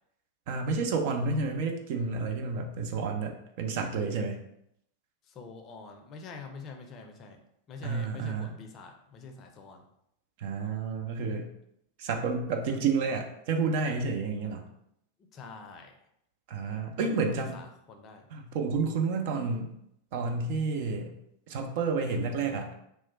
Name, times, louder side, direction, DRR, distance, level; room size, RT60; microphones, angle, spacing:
voice 1, 0.5-4.4 7.8-8.5 10.4-11.5 12.0-14.6 16.5-17.5 18.3-19.7 20.1-21.1 21.5-22.7, right 4 dB, 50° right, 3 dB, 0.5 m, -30 dB
voice 2, 5.2-7.4 7.7-9.9 15.3-16.0 17.0-18.3, left 4 dB, 30° left, 4 dB, 0.5 m, -45 dB
3.1 x 2.3 x 4.1 m, 0.76 s
figure-of-eight pair, 90°, 0 cm